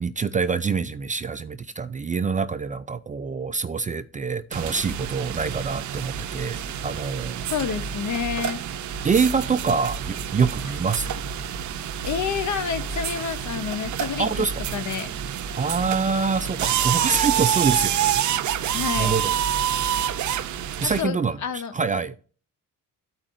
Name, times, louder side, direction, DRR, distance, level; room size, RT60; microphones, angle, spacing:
voice 1, 0.0-7.4 9.0-11.1 14.2-14.5 15.6-18.2 18.5-19.3 20.8-22.1, right 5 dB, 25° right, 0.4 m, -25 dB
sound 1, 4.5-21.0, right 9 dB, 60° right, 0.6 m, -28 dB
voice 2, 7.5-8.6 10.6-10.7 12.0-14.5 14.7-15.1 18.7-19.1 20.8-21.7, left 7 dB, 60° left, 0.9 m, -29 dB
13.5 x 4.9 x 2.6 m
cardioid pair, 90°, 33 cm